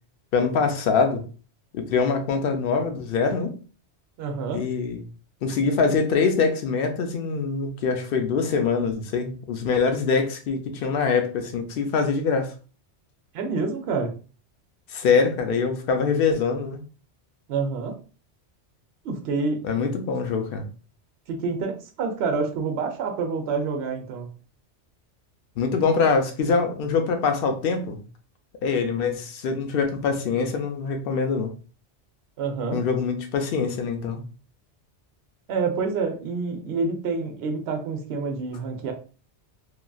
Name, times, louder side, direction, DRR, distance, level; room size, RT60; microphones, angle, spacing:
voice 1, 0.3-1.2 1.7-3.5 4.5-5.0 5.4-12.5 14.9-16.8 19.6-20.6 25.6-28.0 28.6-31.5 32.7-34.2, left 5 dB, 60° left, 6 dB, 0.7 m, -24 dB
voice 2, 4.2-4.6 13.3-14.1 17.5-17.9 19.0-19.6 21.3-24.3 32.4-32.8 35.5-38.9, right 4 dB, 65° right, 4 dB, 0.9 m, -27 dB
3.0 x 2.4 x 2.3 m, 0.37 s
omnidirectional pair, 1.2 m